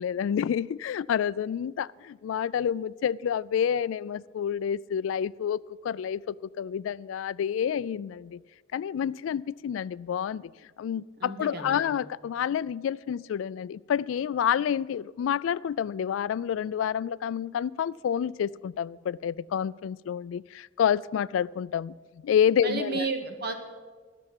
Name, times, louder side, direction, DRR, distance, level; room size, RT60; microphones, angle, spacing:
voice 1, 0.0-8.4 8.7-10.5 10.8-22.0 22.2-23.1, left 8 dB, 85° left, 0.3 m, -29 dB
voice 2, 11.2-11.9 22.6-23.5, right 4 dB, 55° right, 1.6 m, -32 dB
12.5 x 7.0 x 8.9 m
head